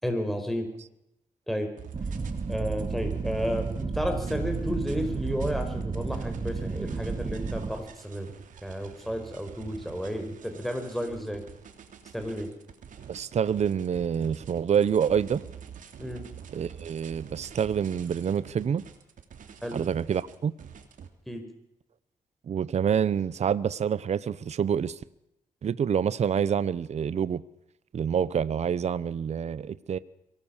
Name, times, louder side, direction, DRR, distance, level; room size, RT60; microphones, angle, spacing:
voice 1, 0.0-0.7 1.5-1.7 2.5-8.3 8.6-11.4 12.1-12.5 16.0-16.2 19.6-19.8 21.3-21.4, equal, ahead, 5.2 m, -32 dB
sound 1, 1.8-21.1, right 8 dB, 75° right, 2.9 m, -46 dB
sound 2, 1.9-7.7, right 4 dB, 40° right, 2.5 m, -32 dB
voice 2, 13.1-15.4 16.5-18.8 19.7-20.5 22.5-25.0 25.6-27.4 27.9-30.0, right 8 dB, 55° right, 0.8 m, -27 dB
24.0 x 18.0 x 7.3 m
cardioid pair, 95°, 14 cm